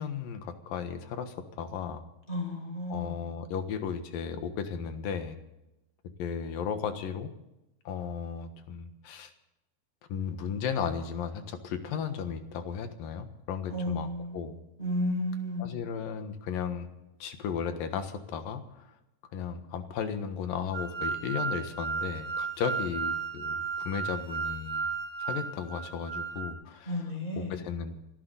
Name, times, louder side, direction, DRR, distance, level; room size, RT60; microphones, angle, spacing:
voice 1, 0.0-2.1 2.9-5.4 6.2-7.3 7.8-9.3 10.1-14.6 15.6-16.9 17.2-18.9 19.3-24.9 25.2-27.9, left 7 dB, 70° left, 8 dB, 3.0 m, -35 dB
voice 2, 2.3-3.2 13.7-14.4 14.8-15.8 26.9-27.6, left 1 dB, 10° left, 0 dB, 5.6 m, -32 dB
sound 1, 20.7-26.5, right 5 dB, 35° right, 2.1 m, -34 dB
27.0 x 12.5 x 4.0 m, 0.92 s
omnidirectional pair, 4.4 m